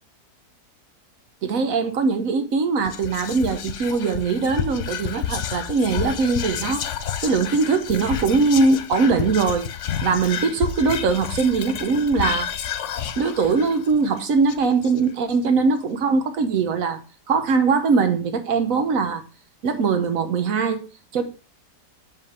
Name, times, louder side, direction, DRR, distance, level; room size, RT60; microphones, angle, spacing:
voice 1, 1.4-6.9 7.2-9.7 10.0-12.5 13.2-19.2 19.6-20.9 21.1-21.2, right 4 dB, 60° right, 1.2 m, -21 dB
Whispering, 2.8-15.3, left 9 dB, 65° left, 0.7 m, -30 dB
7.7 x 3.4 x 5.6 m
omnidirectional pair, 1.9 m